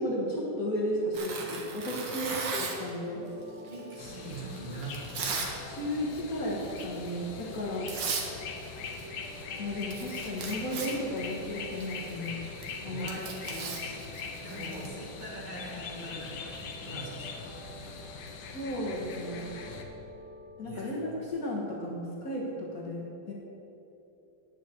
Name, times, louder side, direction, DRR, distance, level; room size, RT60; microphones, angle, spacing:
voice 1, 0.0-3.3 5.7-7.9 9.6-12.4 12.8-13.3 18.5-19.5 20.6-23.3, equal, 50° left, -3 dB, 1.7 m, -34 dB
Tearing, 1.1-2.9 3.7-5.5 5.9-6.2 6.6-6.8 7.5-7.6 7.9-8.3 8.6-9.4 9.7-14.9, right 4 dB, 70° right, 1.9 m, -37 dB
sound 1, 1.8-21.3, left 1 dB, ahead, 1.9 m, -51 dB
voice 2, 3.7-5.4 12.2-12.4 12.8-17.5 17.8-18.0 19.6-19.8 20.6-20.9, right 1 dB, 25° right, -7 dB, 2.6 m, -42 dB
sound 2, 4.0-19.8, left 5 dB, 70° left, 1.5 m, -42 dB
9.4 x 6.0 x 8.4 m, 2.9 s
omnidirectional pair, 2.1 m